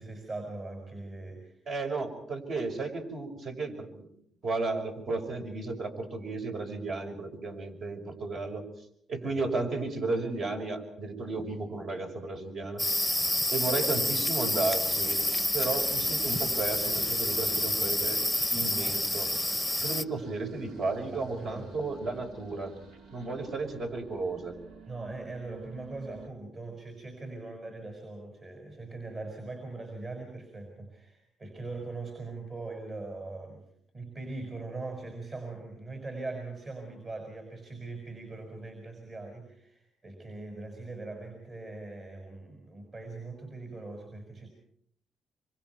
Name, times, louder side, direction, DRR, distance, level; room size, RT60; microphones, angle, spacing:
voice 1, 0.0-1.6 9.2-9.3 20.7-21.7 23.2-23.3 24.9-33.7 33.9-44.5, right 3 dB, 40° right, 3 dB, 6.0 m, -41 dB
voice 2, 1.7-4.1 4.4-8.7 9.1-12.8 13.5-15.2 15.5-18.2 18.5-19.3 19.8-22.7 23.1-24.6, right 3 dB, 60° right, 3 dB, 5.8 m, -33 dB
sound 1, 12.8-20.0, left 1 dB, 5° left, 0.9 m, -28 dB
sound 2, 14.7-26.3, right 4 dB, 85° right, 2.6 m, -50 dB
27.0 x 25.5 x 4.7 m, 0.68 s
cardioid pair, 90°, 0 cm